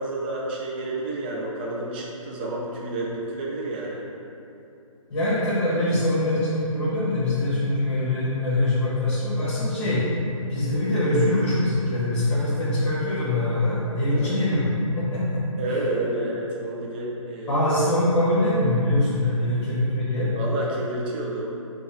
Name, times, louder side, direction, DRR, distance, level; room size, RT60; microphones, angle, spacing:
voice 1, 0.0-4.0 14.1-14.3 15.6-17.6 19.2-19.4 20.3-21.5, right 2 dB, 20° right, -4 dB, 0.3 m, -30 dB
voice 2, 5.1-10.0 10.5-15.4 17.5-20.3, left 1 dB, 50° left, -10 dB, 1.5 m, -23 dB
5.4 x 2.3 x 4.3 m, 2.7 s
hypercardioid pair, 155°, 18 cm